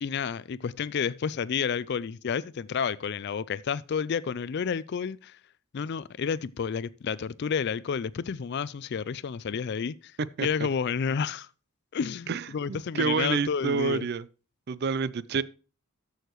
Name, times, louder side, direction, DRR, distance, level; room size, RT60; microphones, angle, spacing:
voice 1, 0.0-5.4 5.7-11.5 11.9-14.1, left 6 dB, 50° left, 0.4 m, -30 dB
voice 2, 12.3-14.3 14.7-15.4, right 5 dB, 45° right, 0.4 m, -28 dB
13.0 x 6.4 x 3.1 m
head